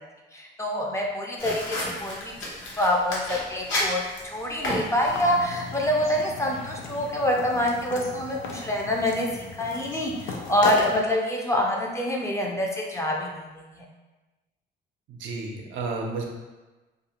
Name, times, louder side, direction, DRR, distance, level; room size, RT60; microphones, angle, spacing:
voice 1, 0.3-4.0 4.3-9.3 9.6-13.4 13.7-13.8, left 1 dB, 15° left, -1 dB, 0.5 m, -26 dB
sound 1, 1.4-5.4, left 1 dB, 70° left, 0.8 m, -32 dB
sound 2, 5.1-11.0, left 4 dB, 90° left, 0.4 m, -36 dB
voice 2, 15.1-16.2, right 3 dB, 75° right, 0 dB, 0.5 m, -32 dB
2.5 x 2.3 x 2.8 m, 1.2 s
cardioid pair, 90°, 20 cm